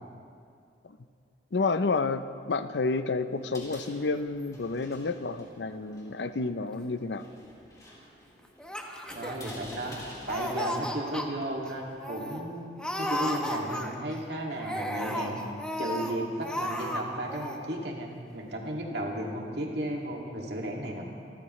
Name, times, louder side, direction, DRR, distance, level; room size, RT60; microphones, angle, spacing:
voice 1, 1.5-7.2, left 3 dB, 80° left, 11 dB, 0.6 m, -30 dB
sound 1, 3.3-12.0, left 1 dB, 20° left, 3.4 m, -50 dB
Laughter, 8.6-9.9 10.2-11.3 11.7-11.8 12.0-12.4 12.8-14.1 14.6-16.1 16.4-17.0 17.3-17.6, equal, 5° left, 1.0 m, -34 dB
voice 2, 9.1-10.0 10.3-12.7 13.0-15.4 15.8-21.0, right 1 dB, 70° right, -1 dB, 2.3 m, -34 dB
26.5 x 14.0 x 3.2 m, 2.3 s
head